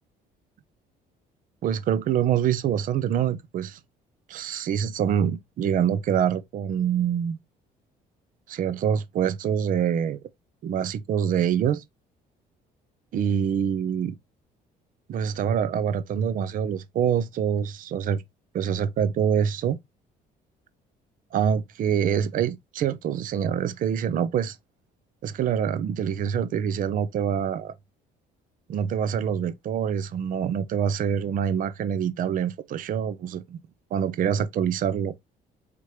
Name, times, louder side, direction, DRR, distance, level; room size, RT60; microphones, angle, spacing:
voice 1, 1.6-3.8 4.3-7.4 8.5-10.2 10.6-11.8 13.1-14.1 15.1-18.2 18.5-19.8 21.3-24.6 25.2-27.7 28.7-33.6 33.9-35.1, right 8 dB, 55° right, 0.6 m, -25 dB
5.0 x 3.0 x 3.0 m
cardioid pair, 110°, 17 cm